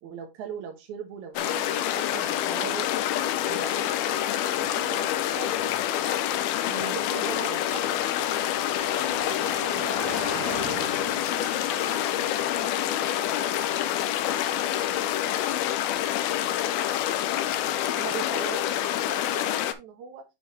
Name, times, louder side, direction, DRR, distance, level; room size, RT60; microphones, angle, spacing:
voice 1, 0.0-2.9 3.5-6.3 6.7-8.0 18.0-20.2, right 7 dB, 65° right, 2 dB, 2.1 m, -40 dB
sound 1, 1.4-19.7, left 12 dB, 80° left, 2.5 m, -27 dB
Car passing by, 2.0-18.5, right 4 dB, 45° right, 2.5 m, -45 dB
voice 2, 8.7-13.7 14.0-15.7 15.9-16.6, left 4 dB, 35° left, -4 dB, 2.9 m, -45 dB
6.9 x 6.0 x 3.6 m, 0.22 s
omnidirectional pair, 4.5 m